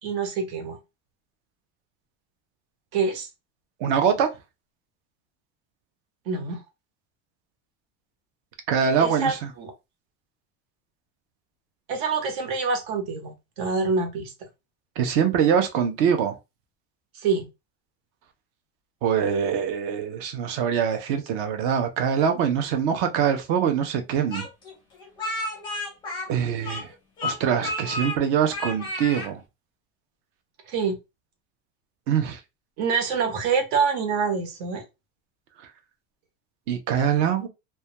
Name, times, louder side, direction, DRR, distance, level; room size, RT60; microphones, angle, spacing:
voice 1, 0.0-0.8 2.9-3.3 6.3-6.6 9.0-9.7 11.9-14.3 17.1-17.5 30.7-31.0 32.8-34.8, right 5 dB, 60° right, 0.9 m, -26 dB
voice 2, 3.8-4.3 8.7-9.5 15.0-16.4 19.0-24.5 26.3-26.9 27.2-29.4 32.1-32.4 36.7-37.5, right 7 dB, 40° right, 0.5 m, -23 dB
Speech, 24.3-26.9 27.2-28.2 28.5-29.3, left 2 dB, 15° left, 0.5 m, -32 dB
2.2 x 2.2 x 2.7 m
cardioid pair, 180°, 36 cm